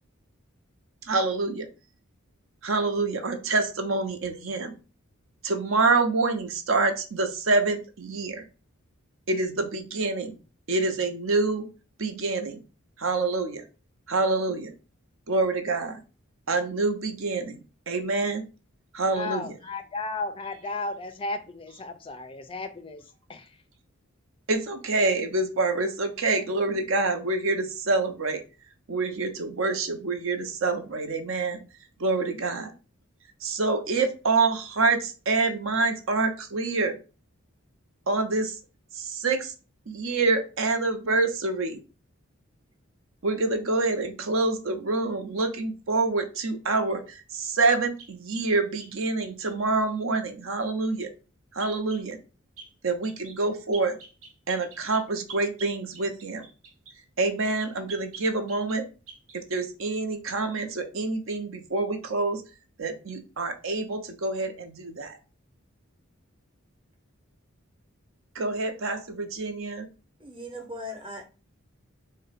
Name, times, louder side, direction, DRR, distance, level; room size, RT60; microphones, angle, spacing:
voice 1, 1.0-1.7 2.6-4.7 5.4-8.4 9.3-10.3 10.7-11.7 12.0-12.6 13.0-13.6 14.1-14.7 15.3-16.0 16.5-17.6 17.9-18.4 18.9-19.5 24.5-28.4 28.9-31.6 32.0-32.7 33.4-37.0 38.1-38.6 38.9-39.5 39.9-41.8 43.2-51.1 51.5-52.2 52.8-54.0 54.5-56.4 57.2-58.8 59.3-62.4 62.8-65.2 68.3-69.9, right 3 dB, 70° right, 7 dB, 0.7 m, -26 dB
voice 2, 19.2-23.0 23.3-23.5, left 3 dB, 25° left, 10 dB, 0.4 m, -34 dB
sound 1, 47.6-49.5 51.6-52.1 52.6-52.7 53.0-53.4 53.7-57.0 57.6-58.8 59.1-59.4, right 5 dB, 85° right, 1.0 m, -46 dB
voice 3, 70.2-71.3, left 1 dB, 25° right, 3 dB, 0.8 m, -38 dB
3.9 x 2.1 x 4.0 m, 0.33 s
head